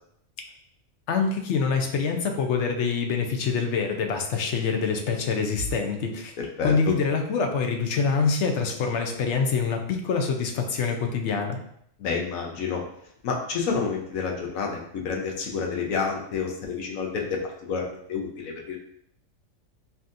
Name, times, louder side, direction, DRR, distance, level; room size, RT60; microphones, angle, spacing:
voice 1, 1.1-6.4 6.6-11.6, left 5 dB, 65° left, 4 dB, 0.9 m, -25 dB
voice 2, 6.4-6.9 12.0-12.8 13.2-18.8, left 5 dB, 80° left, 0 dB, 1.2 m, -29 dB
5.7 x 2.8 x 2.5 m, 0.71 s
omnidirectional pair, 1.4 m